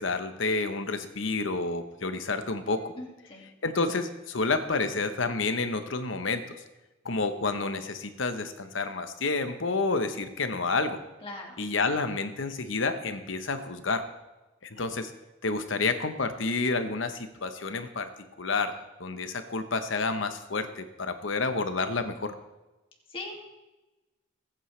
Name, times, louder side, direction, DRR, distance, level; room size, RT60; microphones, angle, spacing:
voice 1, 0.0-2.9 3.6-6.4 7.0-11.0 11.6-14.0 14.6-15.1 15.4-18.1 18.4-18.7 19.0-22.3, left 3 dB, 70° left, 9 dB, 1.0 m, -29 dB
voice 2, 3.0-3.5 11.2-11.6 23.1-23.5, left 2 dB, 25° left, -1 dB, 2.3 m, -40 dB
20.0 x 8.7 x 3.3 m, 1.1 s
head